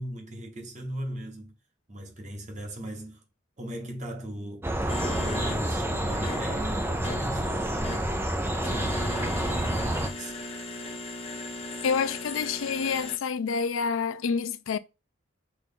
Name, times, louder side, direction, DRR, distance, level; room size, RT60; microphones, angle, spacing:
voice 1, 0.0-1.6 1.9-3.2 3.6-8.1 8.4-10.4, right 1 dB, 35° right, 1.1 m, -38 dB
sound 1, 4.6-10.1, right 1 dB, 10° right, 0.4 m, -29 dB
sound 2, 4.9-13.2, left 2 dB, 30° left, 0.6 m, -38 dB
voice 2, 11.8-14.8, left 6 dB, 75° left, 0.4 m, -28 dB
5.8 x 2.4 x 3.7 m
head